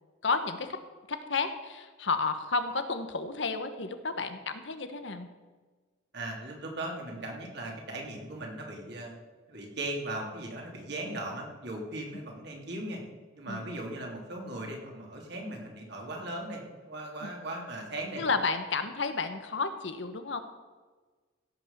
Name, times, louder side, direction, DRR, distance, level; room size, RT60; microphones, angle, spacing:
voice 1, 0.2-0.8 1.1-5.3 13.5-13.6 17.2-17.3 18.2-20.4, left 4 dB, 65° left, 8 dB, 1.2 m, -31 dB
voice 2, 6.1-9.2 9.5-13.0 13.3-18.2, right 1 dB, 60° right, 0 dB, 3.3 m, -38 dB
16.5 x 6.3 x 7.3 m, 1.4 s
head